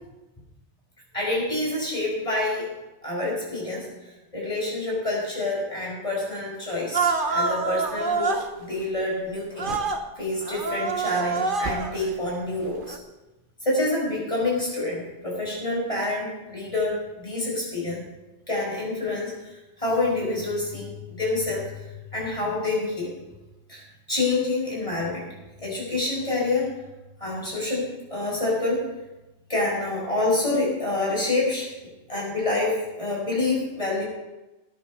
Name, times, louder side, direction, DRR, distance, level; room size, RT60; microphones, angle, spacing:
voice 1, 1.1-2.7 3.0-3.9 4.3-9.7 10.2-13.0 13.6-18.0 18.5-19.3 19.8-21.6 22.1-23.1 23.7-25.2 25.6-26.7 27.2-28.8 29.5-31.7 32.1-34.0, left 2 dB, 25° left, -4 dB, 5.9 m, -27 dB
sound 1, 6.9-8.5 9.6-10.0 10.4-12.1 12.8-13.0, right 4 dB, 45° right, 1.1 m, -26 dB
19.5 x 10.5 x 4.3 m, 1.1 s
omnidirectional pair, 1.2 m